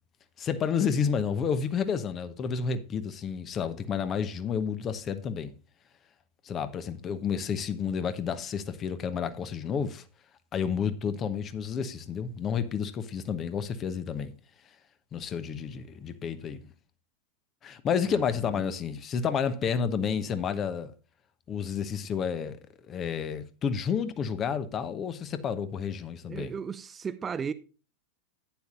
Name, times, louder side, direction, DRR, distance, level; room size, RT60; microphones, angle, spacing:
voice 1, 0.4-5.5 6.4-10.0 10.5-14.3 15.1-16.6 17.6-20.9 21.5-22.6 22.9-26.5, left 7 dB, 25° left, 1.1 m, -30 dB
voice 2, 26.3-27.5, right 6 dB, 20° right, 0.5 m, -35 dB
11.5 x 9.7 x 2.5 m
figure-of-eight pair, 90°, 0 cm